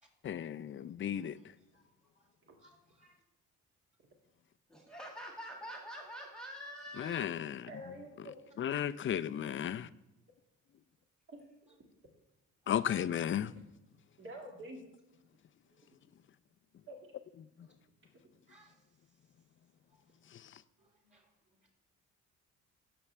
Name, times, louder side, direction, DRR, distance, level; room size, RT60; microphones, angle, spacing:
voice 1, 0.2-1.4 7.0-7.7 8.6-9.9 12.7-13.5 20.3-20.6, left 9 dB, 40° left, 15 dB, 0.5 m, -34 dB
voice 2, 1.1-2.3 2.6-3.2 4.8-4.9 7.4-7.5 9.0-9.1 11.7-11.8 12.6-12.9 15.6-15.9 17.6-17.7 18.5-19.3 19.9-20.2 20.8-21.7, right 2 dB, 25° right, 0 dB, 4.1 m, -68 dB
voice 3, 4.7-7.3, equal, ahead, 0 dB, 1.9 m, -46 dB
voice 4, 7.6-8.4 11.3-11.5 14.2-14.8 16.9-17.1, right 1 dB, 40° right, 1 dB, 2.1 m, -47 dB
17.5 x 7.0 x 3.3 m, 0.94 s
cardioid pair, 90°, 30 cm